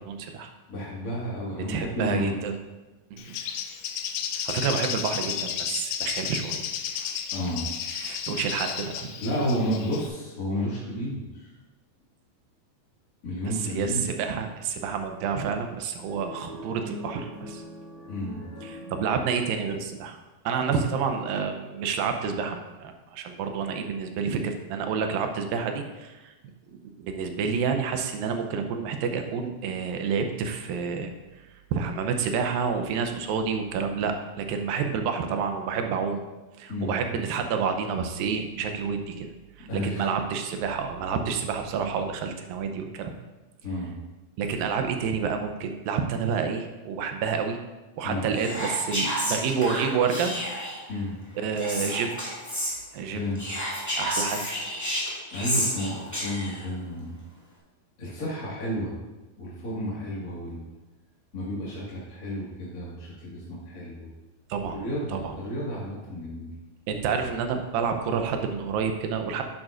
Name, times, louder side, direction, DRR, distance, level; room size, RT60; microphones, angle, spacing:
voice 1, 0.0-0.5 1.7-2.6 3.1-3.3 4.3-6.7 7.0-7.2 7.8-9.1 13.6-17.6 18.6-20.2 20.5-26.3 26.7-31.1 31.7-36.2 36.6-39.3 39.6-43.1 44.4-47.6 48.0-50.3 51.4-52.1 52.9-53.2 54.0-54.4 64.5-64.8 65.1-65.4 66.9-69.4, right 6 dB, 80° right, 5 dB, 2.4 m, -29 dB
voice 2, 0.7-2.4 7.3-7.7 9.2-11.5 13.2-14.1 18.1-18.4 36.7-37.0 39.7-40.1 43.6-44.0 48.0-48.3 50.9-51.2 53.1-53.4 55.3-57.2 58.0-59.0 59.4-60.6 61.3-64.1 64.6-66.5, equal, 35° left, -8 dB, 1.6 m, -31 dB
Bird, 3.2-10.1, left 9 dB, 85° left, 1.8 m, -33 dB
sound 1, 16.0-19.5, left 1 dB, 55° right, 3.8 m, -41 dB
Whispering, 48.3-50.9 51.6-52.7 53.4-56.6, equal, 10° left, 1.1 m, -30 dB
10.5 x 8.9 x 2.5 m, 1.1 s
omnidirectional pair, 4.3 m